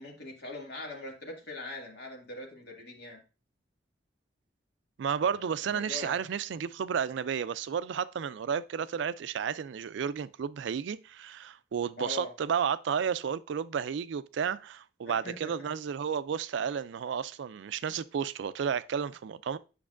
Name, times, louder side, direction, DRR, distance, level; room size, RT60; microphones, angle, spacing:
voice 1, 0.0-3.2 5.2-5.4 5.7-6.2 12.0-12.3 15.0-15.7, left 2 dB, 55° left, 1.8 m, -42 dB
voice 2, 5.0-19.6, right 7 dB, 70° right, 0.3 m, -32 dB
8.4 x 5.9 x 2.4 m
head